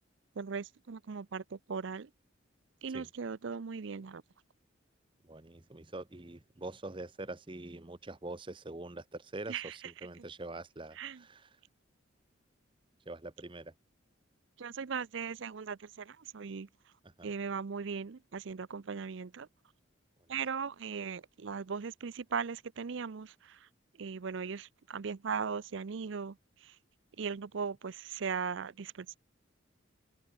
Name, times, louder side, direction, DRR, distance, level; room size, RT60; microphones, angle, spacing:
voice 1, 0.4-2.1 2.8-4.2 9.5-9.7 11.0-11.2 14.6-16.7 17.2-19.5 20.3-23.7 24.0-26.8 27.2-29.2, right 6 dB, 65° right, 0.5 m, -38 dB
voice 2, 5.2-11.6 13.0-13.7 17.0-17.3 20.2-20.3, right 2 dB, 25° right, 0.9 m, -44 dB
open air
head